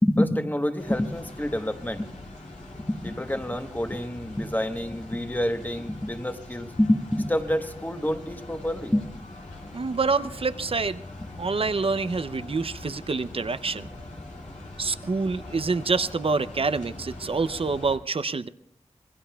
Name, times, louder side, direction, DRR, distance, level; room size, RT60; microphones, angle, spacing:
voice 1, 0.0-2.1 2.9-9.0, left 1 dB, 15° left, 7 dB, 1.1 m, -27 dB
sound 1, 0.8-18.0, left 2 dB, 85° left, 2.3 m, -42 dB
voice 2, 9.7-11.0 11.4-13.9 14.8-18.5, right 4 dB, 50° right, 13 dB, 0.5 m, -27 dB
26.0 x 21.5 x 2.3 m, 0.75 s
wide cardioid pair, 55°, 12 cm